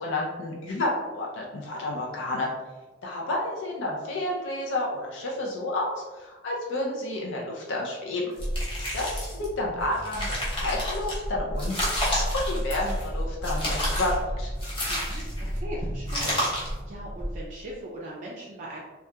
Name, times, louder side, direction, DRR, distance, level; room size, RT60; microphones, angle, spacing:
voice 1, 0.0-2.5 3.0-8.3 8.9-14.5, left 2 dB, 70° left, -2 dB, 0.4 m, -30 dB
sound 1, 8.4-9.4 9.9-11.1 11.6-13.1 13.4-14.2 14.6-15.5 16.1-16.8, left 1 dB, 30° left, 0.8 m, -31 dB
sound 2, 8.4-17.7, equal, 10° right, 0.8 m, -33 dB
voice 2, 14.9-18.8, right 1 dB, 40° right, -5 dB, 0.4 m, -40 dB
2.8 x 2.3 x 2.2 m, 1.2 s
head